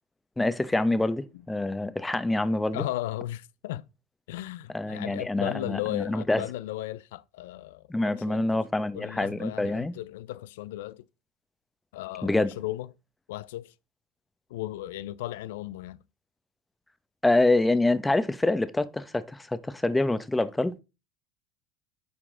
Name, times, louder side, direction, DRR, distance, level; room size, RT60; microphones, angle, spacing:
voice 1, 0.4-2.8 4.7-6.4 7.9-9.9 12.2-12.5 17.2-20.7, left 2 dB, 10° left, 0.8 m, -26 dB
voice 2, 2.7-3.9 4.3-8.4 8.9-11.0 11.9-12.9 13.3-13.7 14.5-16.0, left 15 dB, 80° left, 0.4 m, -36 dB
10.0 x 4.6 x 3.7 m
hypercardioid pair, 85°, 0 cm